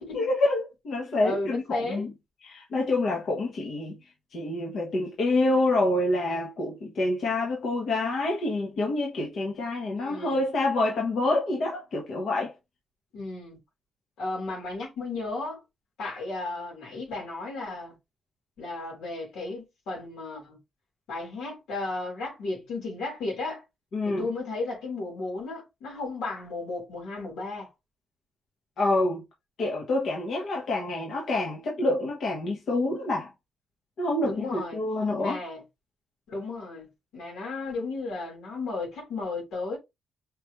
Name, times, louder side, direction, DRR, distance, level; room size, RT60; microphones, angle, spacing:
voice 1, 0.0-2.1 2.4-4.0 4.3-12.5 23.9-24.2 28.8-29.2 29.6-33.3 34.0-35.4, left 2 dB, 60° left, 1.3 m, -27 dB
voice 2, 1.2-2.1 9.9-10.4 13.1-13.6 14.2-15.6 16.0-17.9 18.6-20.6 21.1-23.6 24.0-27.7 34.2-34.8 35.2-35.6 36.3-39.8, left 3 dB, 85° left, 3.3 m, -34 dB
5.1 x 3.3 x 3.0 m
cardioid pair, 135°, 0 cm